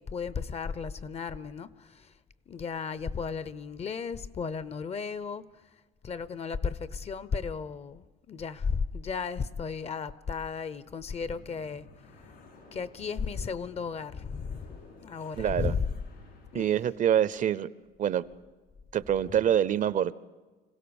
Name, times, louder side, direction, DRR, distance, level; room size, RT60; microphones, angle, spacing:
voice 1, 0.0-2.1 2.5-5.5 6.0-11.9 12.7-15.9 16.5-16.8, left 5 dB, 40° left, 0.8 m, -34 dB
sound 1, 11.1-16.9, left 3 dB, 70° left, 5.4 m, -53 dB
voice 2, 15.4-15.7 16.5-17.7 18.0-18.2 18.9-20.1, right 10 dB, 50° right, 0.6 m, -25 dB
26.0 x 16.5 x 7.1 m
cardioid pair, 110°, 17 cm